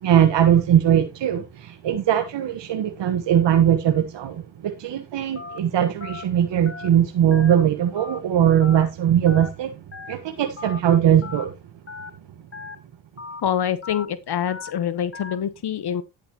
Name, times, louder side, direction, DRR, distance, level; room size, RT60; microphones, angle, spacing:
voice 1, 0.0-9.7 10.1-11.5, right 10 dB, 75° right, 1.3 m, -20 dB
Telephone, 5.4-5.6 6.0-6.2 6.7-6.9 7.3-7.5 8.0-8.2 8.6-8.8 9.3-9.5 9.9-10.1 10.6-10.8 11.2-11.4 11.9-12.1 12.5-12.8 13.2-13.4 13.8-14.1 14.5-14.7 15.1-15.4, left 4 dB, 30° left, 1.6 m, -37 dB
voice 2, 13.4-16.0, left 9 dB, 65° left, 1.0 m, -25 dB
10.5 x 8.0 x 3.0 m
cardioid pair, 55°, 43 cm